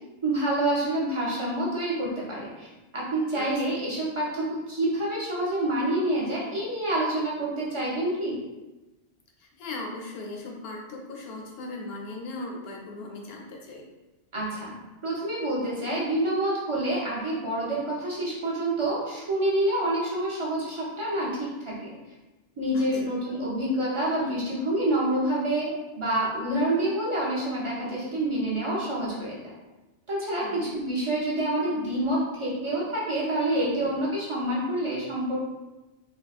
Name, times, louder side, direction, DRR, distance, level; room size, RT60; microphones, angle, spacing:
voice 1, 0.2-2.7 2.9-8.4 14.3-14.8 15.0-21.9 22.6-29.5 30.1-35.4, right 1 dB, 35° right, -6 dB, 0.6 m, -27 dB
voice 2, 3.3-3.8 9.4-13.9 22.7-23.2 30.4-30.7, left 2 dB, 65° left, 0 dB, 0.7 m, -39 dB
3.4 x 2.0 x 2.4 m, 1.1 s
omnidirectional pair, 1.2 m